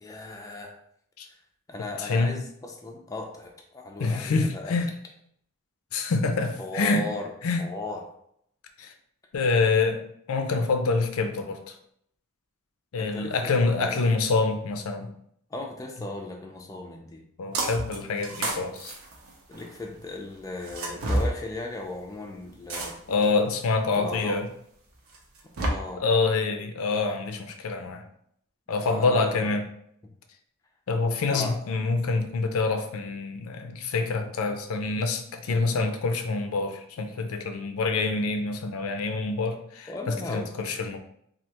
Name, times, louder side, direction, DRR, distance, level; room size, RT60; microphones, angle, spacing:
voice 1, 0.0-0.7 1.7-4.7 6.6-7.3 7.6-8.0 13.0-14.0 15.5-17.2 19.5-22.9 24.0-24.4 25.6-26.0 28.8-29.5 31.3-31.6 39.9-40.5, left 2 dB, 15° left, 1 dB, 0.4 m, -36 dB
voice 2, 2.0-2.4 4.0-4.9 5.9-7.1 7.4-7.6 8.8-8.9 9.3-10.0 10.3-11.8 12.9-15.1 17.4-18.9 23.1-24.5 26.0-28.0 28.7-29.7 30.9-41.0, left 3 dB, 75° left, 5 dB, 0.4 m, -26 dB
sound 1, 17.5-18.0 18.2-19.8 20.6-21.3 22.7-23.2 23.9-24.0 25.1-25.7, right 1 dB, 70° right, 0.7 m, -29 dB
3.3 x 2.4 x 2.8 m, 0.69 s
head